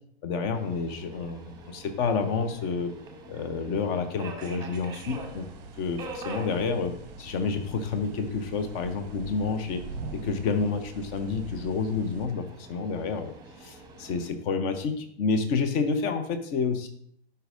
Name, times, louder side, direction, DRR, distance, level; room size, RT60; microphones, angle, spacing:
voice 1, 0.2-2.9 3.3-5.5 5.8-9.8 10.2-16.9, left 5 dB, 30° left, 8 dB, 0.8 m, -29 dB
Subway metro underground, 0.5-14.3, right 2 dB, 10° right, 1.3 m, -46 dB
sound 1, 5.0-12.3, right 4 dB, 35° right, 0.7 m, -43 dB
12.0 x 5.4 x 2.5 m, 0.68 s
figure-of-eight pair, 105°, 33 cm